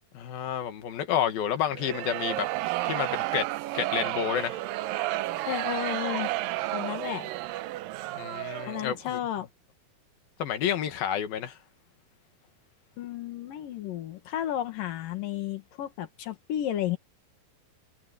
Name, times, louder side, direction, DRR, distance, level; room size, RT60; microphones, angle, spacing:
voice 1, 0.1-2.5 2.8-3.5 3.7-4.6 8.2-9.2 10.4-11.6, left 9 dB, 85° left, 3.7 m, -30 dB
sound 1, 1.7-9.0, right 17 dB, 80° right, 2.4 m, -32 dB
voice 2, 5.5-6.3 6.7-7.3 8.7-9.5 13.0-17.0, left 11 dB, 70° left, 3.3 m, -32 dB
omnidirectional pair, 4.1 m